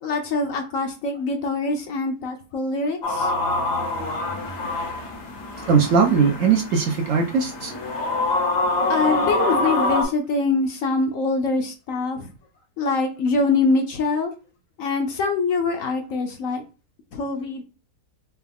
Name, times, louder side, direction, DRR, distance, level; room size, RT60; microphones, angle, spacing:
voice 1, 0.0-3.3 8.9-12.3 12.8-14.3 14.8-16.6 17.1-17.6, left 3 dB, 65° left, 0.9 m, -24 dB
sound 1, 3.0-10.0, left 2 dB, 80° left, 1.7 m, -25 dB
voice 2, 5.7-7.7, right 5 dB, 65° right, 0.8 m, -19 dB
4.5 x 2.3 x 3.4 m
omnidirectional pair, 1.7 m